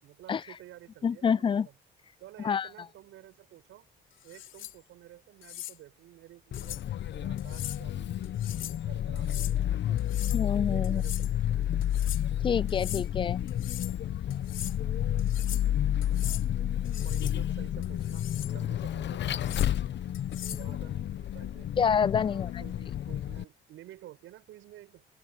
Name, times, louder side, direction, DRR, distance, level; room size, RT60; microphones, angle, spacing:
voice 1, 0.0-1.8 2.2-3.9 4.2-8.2 8.5-10.1 10.7-11.6 17.0-19.6 20.4-25.0, right 14 dB, 85° right, 7.4 m, -51 dB
voice 2, 1.0-1.7 2.4-2.7 10.3-11.0 12.4-13.5 21.8-22.5, left 7 dB, 25° left, 0.3 m, -27 dB
sound 1, 4.2-4.7 5.4-5.8 6.5-6.8 7.4-7.8 8.2-8.8 9.2-9.5 10.0-10.5 10.8-11.3 11.8-12.2 12.7-13.1 13.5-14.0 14.3-14.8 15.2-15.7 16.0-16.4 16.8-17.4 17.8-18.5 19.3-19.7 20.1-20.7, left 13 dB, 85° left, 2.8 m, -41 dB
Vehicle, 6.5-23.4, left 11 dB, 65° left, 0.9 m, -30 dB
cardioid pair, 90°, 20 cm